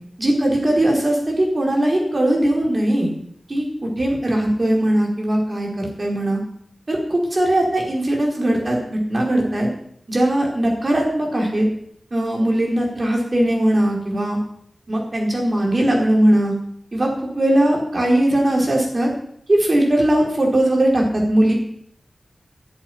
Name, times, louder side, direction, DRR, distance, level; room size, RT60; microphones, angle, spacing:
voice 1, 0.2-3.1 3.5-6.4 6.9-9.7 10.1-11.7 12.1-14.4 14.9-16.5 16.9-17.1 17.4-19.1 19.5-21.5, right 1 dB, 40° right, -1 dB, 4.8 m, -19 dB
10.5 x 8.5 x 9.9 m, 0.66 s
wide cardioid pair, 90°, 0 cm